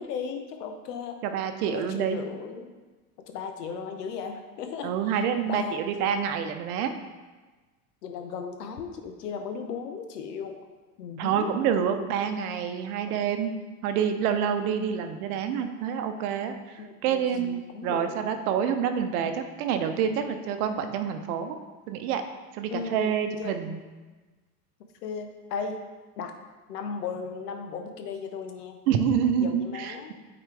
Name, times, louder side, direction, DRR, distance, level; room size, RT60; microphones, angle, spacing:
voice 1, 0.0-1.2 1.7-2.7 3.3-5.2 5.5-5.8 8.0-10.6 11.0-11.5 13.1-13.2 14.7-14.8 16.8-18.2 22.7-23.6 25.0-25.8 26.2-26.3 26.7-28.8 29.4-30.1, left 6 dB, 80° left, 5 dB, 0.9 m, -36 dB
voice 2, 1.2-2.2 4.8-6.9 11.2-13.5 13.8-16.5 17.0-21.6 21.9-22.2 22.5-23.8 28.9-30.1, right 8 dB, 65° right, 7 dB, 0.8 m, -27 dB
8.7 x 4.0 x 3.3 m, 1.3 s
hypercardioid pair, 80°, 47 cm